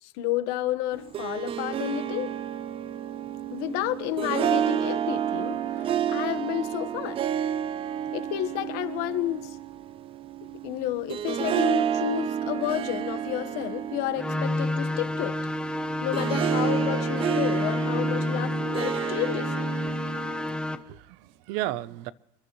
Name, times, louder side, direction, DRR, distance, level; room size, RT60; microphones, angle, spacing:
voice 1, 0.0-2.3 3.5-7.2 8.1-9.6 10.6-15.4 16.0-19.7, left 15 dB, 65° left, 1.2 m, -31 dB
Harp, 0.9-20.8, right 9 dB, 30° right, 0.5 m, -30 dB
sound 1, 14.2-20.8, left 2 dB, 5° left, 0.8 m, -29 dB
voice 2, 20.5-22.1, right 15 dB, 65° right, 0.7 m, -34 dB
28.5 x 11.0 x 3.1 m
supercardioid pair, 130°, 18 cm